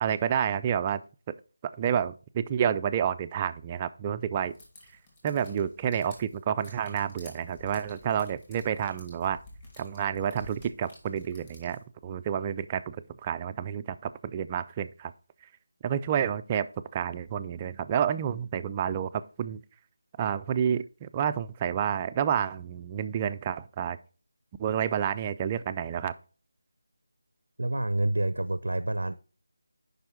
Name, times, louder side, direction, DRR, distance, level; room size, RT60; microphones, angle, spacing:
voice 1, 0.0-1.0 1.3-1.4 1.8-4.5 5.2-9.4 9.8-13.0 13.2-15.1 15.8-19.6 20.2-24.0 24.6-26.2, right 9 dB, 20° right, 0.3 m, -29 dB
sound 1, 4.4-11.8, left 2 dB, 25° left, 2.7 m, -52 dB
voice 2, 27.6-29.1, right 1 dB, 90° right, 0.5 m, -28 dB
7.7 x 5.4 x 4.3 m
figure-of-eight pair, 165°, 0 cm